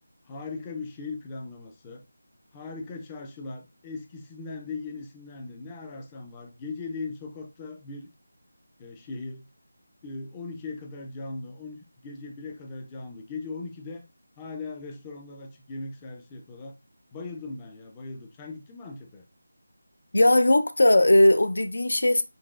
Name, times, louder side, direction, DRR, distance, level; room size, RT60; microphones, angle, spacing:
voice 1, 0.3-2.0 2.5-8.1 8.8-9.5 10.0-14.0 14.4-16.7 17.1-19.2, left 3 dB, 15° left, 0.4 m, -39 dB
voice 2, 20.1-22.2, left 1 dB, 80° left, 0.4 m, -19 dB
3.9 x 2.3 x 2.3 m
figure-of-eight pair, 170°, 0 cm